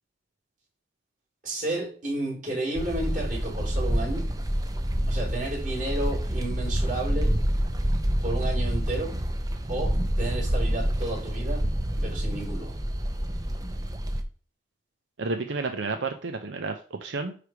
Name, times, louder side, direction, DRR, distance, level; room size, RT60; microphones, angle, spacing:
voice 1, 1.4-4.3 5.1-7.3 8.2-9.1 9.7-11.6 12.0-12.8, right 2 dB, 45° right, -5 dB, 4.3 m, -32 dB
sound 1, 2.7-14.2, equal, 20° right, 0.7 m, -27 dB
voice 2, 15.2-17.4, right 3 dB, 80° right, 6 dB, 0.6 m, -31 dB
9.9 x 3.3 x 4.7 m, 0.42 s
head